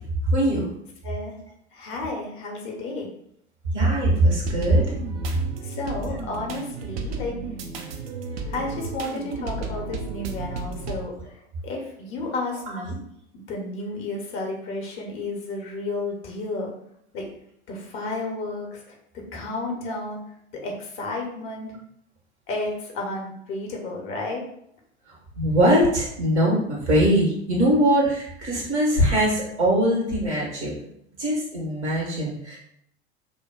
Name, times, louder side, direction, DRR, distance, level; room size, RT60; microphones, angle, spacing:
voice 1, 0.3-0.7 3.7-4.8 25.3-30.7 31.2-32.6, right 1 dB, 75° right, -3 dB, 1.5 m, -21 dB
voice 2, 1.7-3.1 5.6-7.3 8.5-11.2 11.6-13.0 13.3-16.7 17.1-17.2 17.7-18.8 19.3-20.2 20.6-21.8 22.5-24.4, left 2 dB, 35° left, 0 dB, 1.0 m, -32 dB
sound 1, 4.1-11.0, right 4 dB, 60° right, 0.6 m, -33 dB
5.2 x 2.3 x 2.2 m, 0.72 s
figure-of-eight pair, 80°, 34 cm